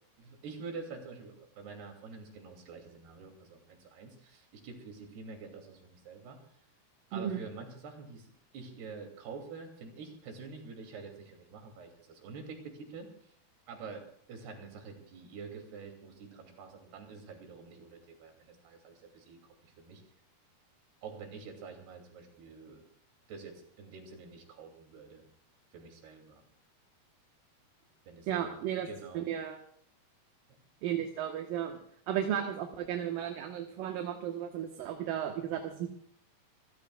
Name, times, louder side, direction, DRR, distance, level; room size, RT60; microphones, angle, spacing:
voice 1, 0.2-6.4 7.1-8.3 8.5-13.1 13.7-20.0 21.0-22.8 23.3-25.2 25.7-26.4 28.1-28.6 28.9-29.3, right 4 dB, 85° right, 3 dB, 4.7 m, -47 dB
voice 2, 28.3-28.9 29.1-29.6 30.8-31.8 32.1-35.9, right 10 dB, 70° right, 3 dB, 2.7 m, -34 dB
27.5 x 15.5 x 2.4 m, 0.65 s
omnidirectional pair, 4.5 m